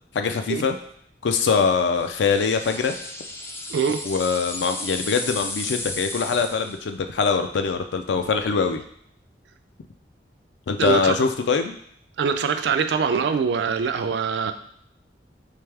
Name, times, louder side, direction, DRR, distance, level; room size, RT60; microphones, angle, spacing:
voice 1, 0.1-0.8 1.2-2.9 4.0-8.8 10.7-11.7, left 5 dB, 85° left, 7 dB, 0.4 m, -23 dB
sound 1, 2.0-6.8, left 2 dB, 15° left, 0.3 m, -34 dB
voice 2, 3.7-4.0 10.8-11.1 12.2-14.5, right 6 dB, 75° right, 9 dB, 0.3 m, -23 dB
3.4 x 3.4 x 3.3 m, 0.68 s
head